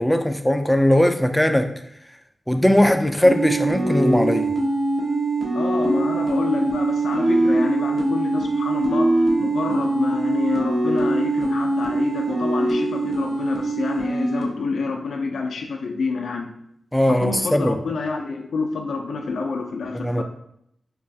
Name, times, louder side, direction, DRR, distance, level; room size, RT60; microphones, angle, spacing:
voice 1, 0.0-1.7 2.5-4.5 16.9-17.8 19.9-20.2, left 1 dB, 5° left, 7 dB, 0.3 m, -19 dB
sound 1, 3.2-14.4, right 2 dB, 45° right, 1.0 m, -22 dB
voice 2, 5.5-16.5 17.1-20.2, left 4 dB, 90° left, 3 dB, 0.3 m, -27 dB
5.2 x 2.3 x 2.6 m, 0.72 s
wide cardioid pair, 80°, 0 cm